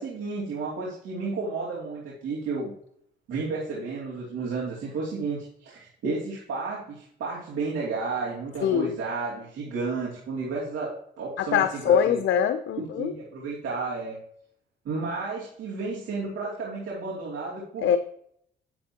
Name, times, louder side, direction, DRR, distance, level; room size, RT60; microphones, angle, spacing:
voice 1, 0.0-2.7 3.3-12.2 12.8-14.2 14.8-18.0, right 3 dB, 80° right, -5 dB, 2.8 m, -32 dB
voice 2, 8.6-9.0 11.4-13.1 17.8-18.0, left 8 dB, 70° left, 9 dB, 0.6 m, -23 dB
10.0 x 7.6 x 2.9 m, 0.65 s
cardioid pair, 90°, 20 cm